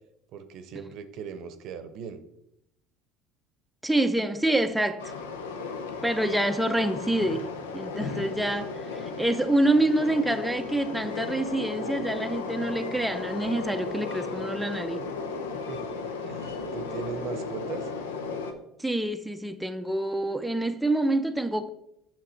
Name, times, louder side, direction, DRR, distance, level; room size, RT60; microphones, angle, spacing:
voice 1, 0.3-2.2 15.7-15.9 16.3-17.9, right 6 dB, 60° right, 0.7 m, -38 dB
voice 2, 3.8-5.1 6.0-15.0 18.8-21.7, right 1 dB, 5° right, 0.5 m, -27 dB
Train, 5.0-18.5, left 4 dB, 85° left, 0.7 m, -35 dB
7.4 x 5.9 x 4.3 m
hypercardioid pair, 70°, 0 cm